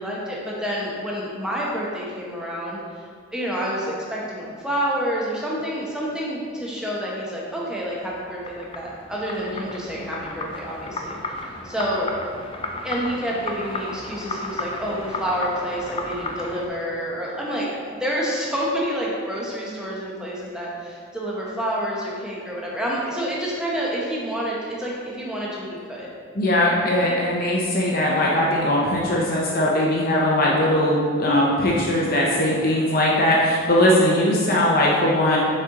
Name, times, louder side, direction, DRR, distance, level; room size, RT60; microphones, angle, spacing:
voice 1, 0.0-2.8 3.3-12.1 12.8-26.1, equal, 5° right, -5 dB, 0.9 m, -28 dB
sound 1, 7.8-16.7, left 2 dB, 25° left, 0.4 m, -33 dB
voice 2, 26.3-35.4, left 1 dB, 45° left, -4 dB, 0.7 m, -20 dB
6.5 x 4.3 x 3.7 m, 2.1 s
head